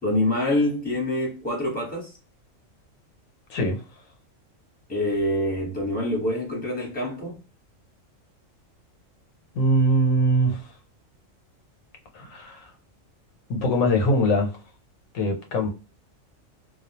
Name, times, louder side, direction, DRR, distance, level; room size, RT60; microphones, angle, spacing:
voice 1, 0.0-2.1 4.9-7.4, left 1 dB, 5° left, 0.9 m, -25 dB
voice 2, 3.5-3.8 9.5-10.6 12.1-12.7 13.5-14.5 15.1-15.7, equal, 85° left, 1.1 m, -22 dB
2.3 x 2.3 x 2.8 m
omnidirectional pair, 1.4 m